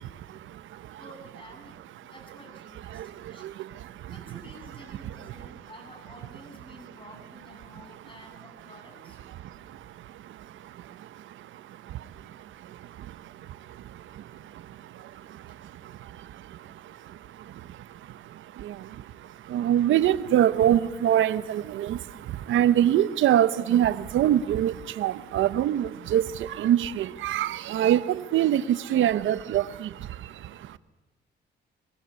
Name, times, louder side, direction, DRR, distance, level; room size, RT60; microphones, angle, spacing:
voice 1, 0.0-1.0 2.0-2.1 2.9-4.4 5.0-5.6 7.7-7.8 9.3-30.8, right 11 dB, 80° right, 14 dB, 1.1 m, -27 dB
voice 2, 1.0-3.5 4.1-9.2 15.5-15.6, left 1 dB, 25° left, 4 dB, 7.4 m, -50 dB
24.5 x 22.0 x 8.4 m, 1.1 s
cardioid pair, 90°, 20 cm